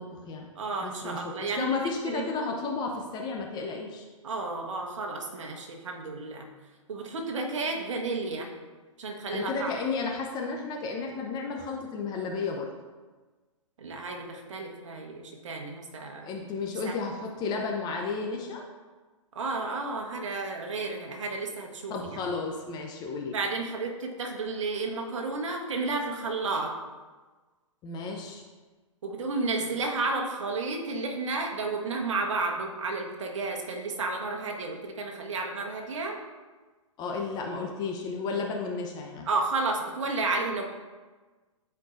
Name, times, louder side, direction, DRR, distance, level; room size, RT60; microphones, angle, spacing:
voice 1, 0.0-0.5 0.8-4.0 9.3-12.7 16.2-18.6 21.9-23.3 27.8-28.4 37.0-39.3, left 4 dB, 25° left, 1 dB, 0.8 m, -33 dB
voice 2, 0.5-2.3 4.2-6.5 6.9-8.5 9.0-9.8 13.8-16.4 16.8-17.0 19.3-22.2 23.3-26.7 29.0-36.2 39.3-40.6, right 3 dB, 65° right, 1 dB, 1.2 m, -32 dB
11.0 x 4.6 x 2.5 m, 1.3 s
hypercardioid pair, 120°, 17 cm